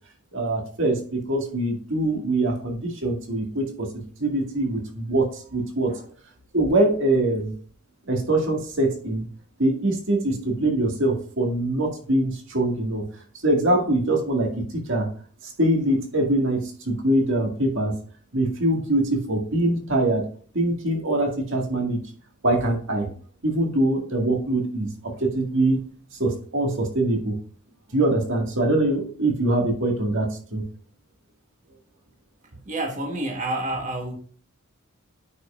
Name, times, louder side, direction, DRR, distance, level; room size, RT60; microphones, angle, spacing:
voice 1, 0.3-3.9 4.2-5.9 6.5-7.5 8.1-9.3 9.6-13.0 13.4-15.1 15.6-17.9 18.3-20.3 20.5-22.0 22.4-23.1 23.4-25.8 26.2-27.4 27.9-30.6, right 1 dB, 60° right, 2.0 m, -23 dB
voice 2, 32.6-34.2, right 1 dB, 35° right, 1.4 m, -29 dB
9.3 x 5.4 x 2.5 m
head